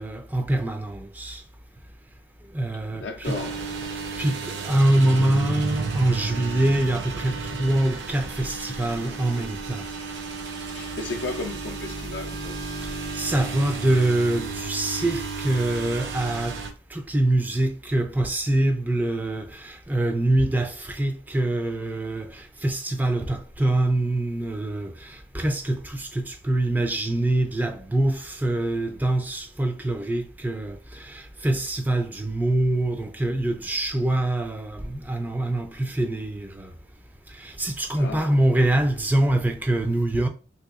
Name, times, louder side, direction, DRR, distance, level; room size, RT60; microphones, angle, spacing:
voice 1, 0.0-1.4 2.5-3.4 4.2-9.9 12.8-16.6 16.9-36.7 37.3-40.3, right 1 dB, 10° right, 0.3 m, -24 dB
voice 2, 2.9-4.1 10.7-12.7 37.9-38.4, left 3 dB, 75° left, 0.4 m, -35 dB
sound 1, 3.2-16.7, right 4 dB, 75° right, 0.7 m, -33 dB
3.3 x 2.9 x 2.4 m
head